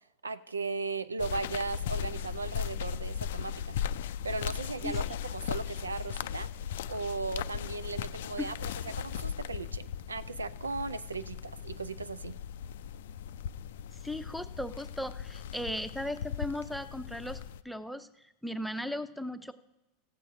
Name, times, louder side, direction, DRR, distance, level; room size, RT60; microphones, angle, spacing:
voice 1, 0.2-3.8 4.0-6.5 6.9-8.5 8.8-12.4, right 4 dB, 85° right, 15 dB, 0.4 m, -37 dB
sound 1, 1.2-17.6, left 9 dB, 70° left, 0.3 m, -37 dB
voice 2, 14.0-18.1 18.4-19.5, left 1 dB, ahead, 9 dB, 0.7 m, -37 dB
15.0 x 8.1 x 3.6 m, 0.96 s
figure-of-eight pair, 85°, 0 cm